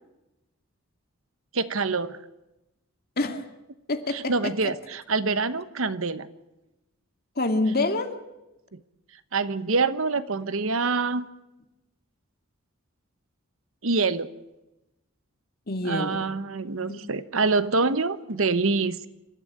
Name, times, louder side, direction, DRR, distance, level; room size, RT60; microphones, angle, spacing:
voice 1, 1.5-2.2 4.1-6.3 8.7-8.8 9.3-11.3 13.8-14.3 15.8-19.1, right 4 dB, 65° right, 13 dB, 1.0 m, -26 dB
voice 2, 3.2-3.5 3.9-4.7 7.4-8.1 15.7-16.3 16.9-17.0, left 2 dB, 45° left, 6 dB, 2.1 m, -27 dB
26.5 x 13.0 x 9.3 m, 0.97 s
head